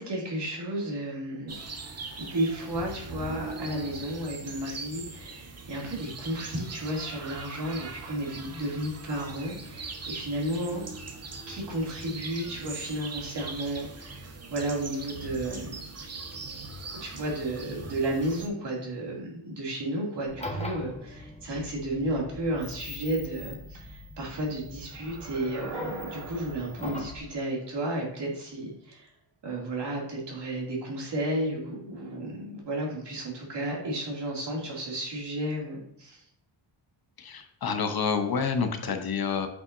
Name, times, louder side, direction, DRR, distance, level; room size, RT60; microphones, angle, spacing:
voice 1, 0.0-1.6 2.2-10.8 11.5-15.7 16.9-29.1 29.4-36.2, right 1 dB, 55° right, -2 dB, 2.7 m, -33 dB
sound 1, 1.5-18.5, right 3 dB, 30° right, 1.0 m, -41 dB
sound 2, 20.3-27.2, left 1 dB, 15° left, 1.3 m, -41 dB
sound 3, 24.9-28.0, right 1 dB, 80° right, 2.6 m, -41 dB
voice 2, 37.2-39.5, left 5 dB, 50° left, 6 dB, 0.9 m, -28 dB
8.2 x 5.7 x 2.6 m, 0.73 s
cardioid pair, 110°, 48 cm